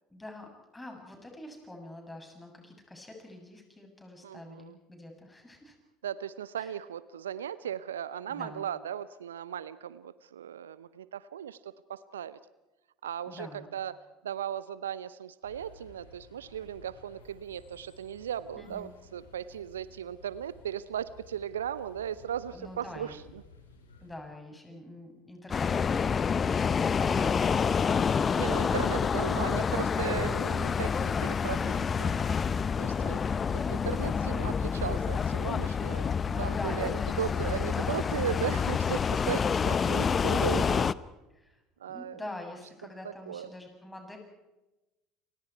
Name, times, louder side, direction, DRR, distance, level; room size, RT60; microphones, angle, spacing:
voice 1, 0.1-5.8 6.6-6.7 8.3-8.7 13.3-13.7 18.6-18.9 22.5-23.2 24.0-29.7 36.2-38.4 41.3-41.6 41.9-44.2, left 1 dB, 10° left, 3 dB, 7.6 m, -45 dB
voice 2, 4.2-4.8 6.0-12.4 13.0-14.0 14.2-23.4 24.7-24.8 28.4-32.3 32.8-40.9 41.8-42.2 43.0-43.5, right 9 dB, 75° right, 17 dB, 0.7 m, -37 dB
sound 1, 15.4-24.1, left 2 dB, 80° left, 4.7 m, -55 dB
sound 2, 25.5-40.9, left 6 dB, 30° left, 0.7 m, -28 dB
29.0 x 25.5 x 4.6 m, 1.0 s
figure-of-eight pair, 65°, 0 cm